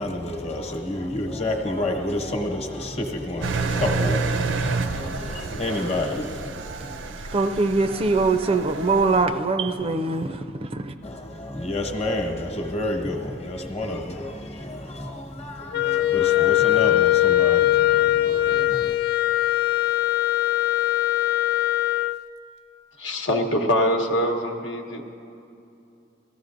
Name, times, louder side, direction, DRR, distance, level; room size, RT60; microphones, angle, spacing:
voice 1, 0.0-6.5 11.0-18.9, left 1 dB, 35° left, 1.1 m, -29 dB
Engine, 3.4-9.2, right 4 dB, 85° right, 0.5 m, -29 dB
voice 2, 7.1-10.9, right 3 dB, 30° right, 0.4 m, -23 dB
Wind instrument woodwind instrument, 15.7-22.2, left 15 dB, 55° left, 0.3 m, -21 dB
voice 3, 23.0-25.0, equal, 80° left, 1.1 m, -23 dB
18.5 x 14.0 x 2.6 m
head